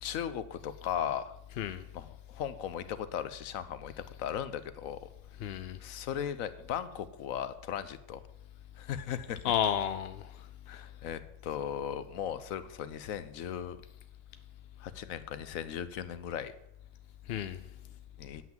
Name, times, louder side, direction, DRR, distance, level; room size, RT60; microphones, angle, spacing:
voice 1, 0.0-1.4 1.9-5.1 5.8-8.2 8.8-9.4 10.7-13.8 14.8-16.5 18.2-18.4, left 9 dB, 80° left, 13 dB, 1.1 m, -37 dB
voice 2, 5.4-5.8 9.4-10.4 17.3-17.6, left 9 dB, 65° left, 11 dB, 0.6 m, -32 dB
9.6 x 5.9 x 7.2 m, 0.80 s
omnidirectional pair, 1.4 m